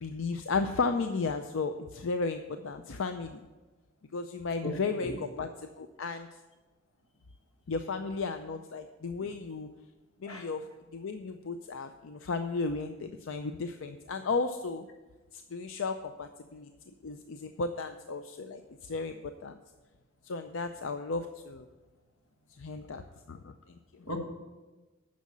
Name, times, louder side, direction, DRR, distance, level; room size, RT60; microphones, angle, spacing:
voice 1, 0.0-3.5 4.1-6.3 7.7-9.7 10.2-14.9 15.3-16.7 17.0-19.6 20.2-21.7 22.5-24.1, left 4 dB, 70° left, 8 dB, 0.5 m, -34 dB
voice 2, 4.6-5.2 10.2-10.5 24.1-24.2, equal, 90° left, 2 dB, 1.7 m, -37 dB
9.4 x 6.3 x 7.3 m, 1.2 s
head